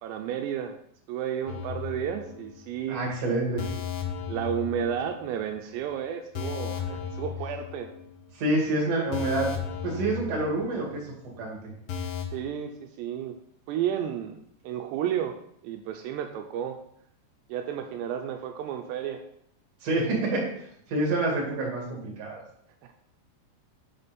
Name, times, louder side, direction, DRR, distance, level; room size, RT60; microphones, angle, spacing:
voice 1, 0.0-0.8 1.1-3.0 4.3-7.9 12.3-13.4 13.7-15.3 15.6-16.8 17.5-19.2 22.8-23.0, right 9 dB, 85° right, 5 dB, 2.7 m, -32 dB
sound 1, 1.5-2.7 3.0-3.2 3.6-5.5 5.8-5.9 6.4-8.3 8.6-8.7 9.1-11.1 11.3-11.4 11.9-12.3, left 7 dB, 80° left, 2.1 m, -35 dB
voice 2, 2.9-3.6 8.3-9.5 9.8-11.1 11.4-11.6 19.8-22.4, right 2 dB, 45° right, -2 dB, 2.5 m, -27 dB
6.7 x 4.2 x 5.2 m, 0.70 s
omnidirectional pair, 5.0 m